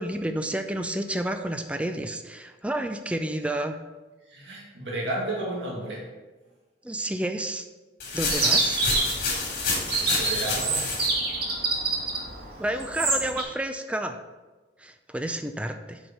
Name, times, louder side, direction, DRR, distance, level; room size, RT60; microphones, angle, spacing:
voice 1, 0.0-3.8 6.8-7.6 8.1-8.8 12.6-14.2 14.8-16.0, right 1 dB, 5° right, 6 dB, 0.5 m, -30 dB
voice 2, 4.3-6.1 10.1-10.9, right 1 dB, 80° right, -4 dB, 2.3 m, -32 dB
sound 1, 8.0-11.1, left 3 dB, 55° left, 3.3 m, -29 dB
Chirp tweet, 8.3-13.4, right 3 dB, 60° right, 2.2 m, -27 dB
7.8 x 6.3 x 5.4 m, 1.2 s
head